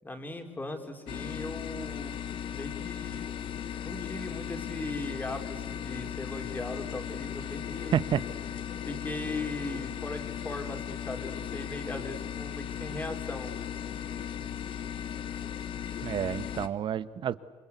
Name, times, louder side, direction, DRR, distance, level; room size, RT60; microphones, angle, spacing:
voice 1, 0.0-3.3 3.8-8.0 8.8-13.5, left 2 dB, 15° left, 4 dB, 4.0 m, -39 dB
sound 1, 1.1-16.7, left 9 dB, 55° left, 1.3 m, -37 dB
voice 2, 16.0-17.4, right 9 dB, 50° right, 15 dB, 1.1 m, -29 dB
27.5 x 24.5 x 8.3 m, 1.4 s
cardioid pair, 110°, 11 cm